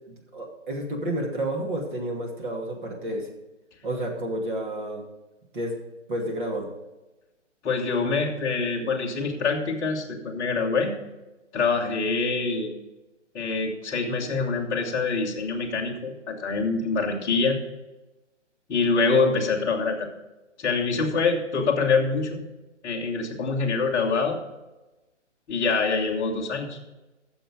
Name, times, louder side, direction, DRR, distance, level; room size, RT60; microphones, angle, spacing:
voice 1, 0.1-3.3 3.8-5.0 5.5-5.7 6.1-6.7, right 1 dB, 45° right, 1 dB, 2.5 m, -30 dB
voice 2, 7.6-10.9 11.5-12.7 13.3-17.6 18.7-20.1 20.6-22.4 22.8-24.4 25.5-26.8, left 4 dB, 10° left, -6 dB, 1.2 m, -25 dB
13.5 x 7.2 x 4.9 m, 1.0 s
hypercardioid pair, 165°, 36 cm